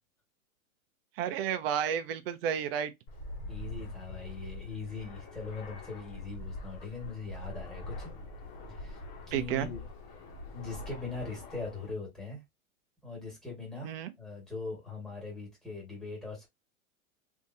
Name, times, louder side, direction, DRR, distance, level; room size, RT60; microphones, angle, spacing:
voice 1, 1.2-2.9 9.3-9.7 13.8-14.1, right 9 dB, 45° right, 0.7 m, -31 dB
Fixed-wing aircraft airplane, 3.1-11.9, left 1 dB, 40° left, 1.2 m, -44 dB
voice 2, 3.5-8.1 8.7-9.8 10.5-12.4 13.0-16.5, left 4 dB, ahead, 1.8 m, -41 dB
3.4 x 2.8 x 2.7 m
supercardioid pair, 150°, 43 cm